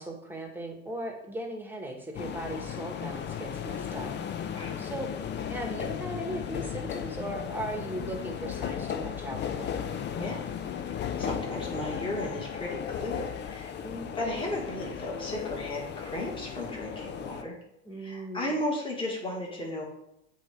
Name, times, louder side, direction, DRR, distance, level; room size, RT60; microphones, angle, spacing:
voice 1, 0.0-4.2 4.8-5.1 5.5-9.7 13.8-14.1 17.8-18.5, right 1 dB, 5° right, 2 dB, 1.4 m, -38 dB
sound 1, 2.2-17.4, left 8 dB, 30° left, 0.6 m, -35 dB
voice 2, 11.2-13.7 14.2-17.6 18.0-19.8, left 1 dB, 15° left, -3 dB, 1.9 m, -34 dB
7.7 x 2.7 x 5.1 m, 0.81 s
hypercardioid pair, 95°, 36 cm